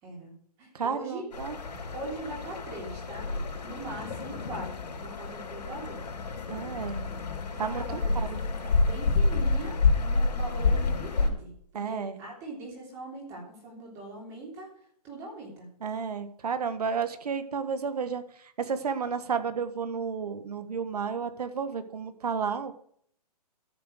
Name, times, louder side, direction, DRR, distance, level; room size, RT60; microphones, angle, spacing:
voice 1, 0.0-1.2 1.7-3.3 3.6-4.7 5.0-6.0 7.5-14.7 15.0-15.7, right 2 dB, 15° right, -1 dB, 3.4 m, -41 dB
voice 2, 0.7-1.6 6.5-7.0 7.6-7.8 8.1-8.4 11.7-12.2 15.8-18.2 18.6-22.7, right 6 dB, 70° right, 10 dB, 1.6 m, -32 dB
sound 1, 1.3-11.3, left 3 dB, 85° left, 3.9 m, -29 dB
13.5 x 7.2 x 6.5 m, 0.63 s
hypercardioid pair, 180°, 21 cm